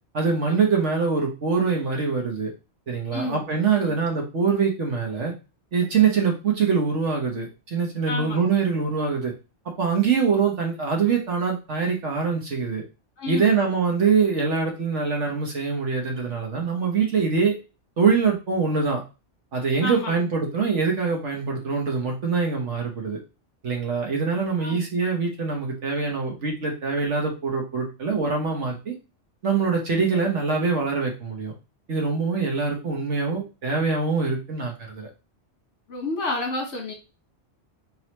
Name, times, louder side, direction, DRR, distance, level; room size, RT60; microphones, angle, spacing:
voice 1, 0.1-2.5 2.9-5.3 5.7-9.3 9.8-12.8 13.3-17.6 18.0-19.0 19.5-23.2 23.6-28.9 29.4-31.5 31.9-35.1, right 5 dB, 75° right, 0 dB, 1.6 m, -24 dB
voice 2, 3.1-3.4 3.7-3.9 8.1-8.5 13.2-13.6 19.8-20.2 24.6-24.8 35.9-36.9, left 2 dB, 70° left, 2 dB, 1.6 m, -30 dB
4.0 x 4.0 x 3.0 m, 0.30 s
omnidirectional pair, 1.2 m